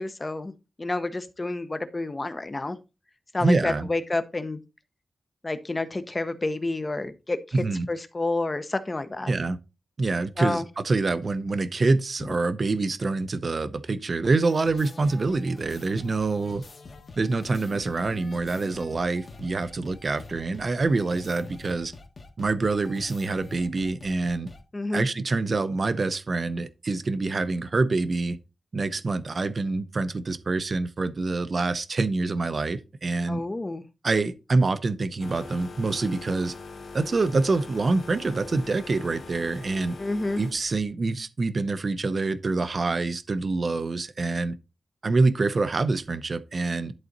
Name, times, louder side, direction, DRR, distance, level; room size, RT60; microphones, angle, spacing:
voice 1, 0.0-2.8 3.3-4.6 5.4-7.4 7.9-9.3 10.4-10.6 24.7-25.1 33.3-33.8 40.0-40.4, left 2 dB, 20° left, 0.7 m, -29 dB
voice 2, 3.4-3.9 7.5-7.9 9.3-9.6 10.0-16.6 17.2-21.9 22.4-24.5 24.9-28.4 28.7-33.4 34.0-36.5 36.9-40.0 40.4-44.5 45.0-46.9, right 3 dB, 40° right, 0.6 m, -26 dB
sound 1, 14.4-24.6, left 3 dB, 40° left, 1.4 m, -45 dB
sound 2, 35.2-40.8, left 4 dB, 75° left, 1.7 m, -42 dB
11.0 x 4.1 x 3.9 m
wide cardioid pair, 170°, 0 cm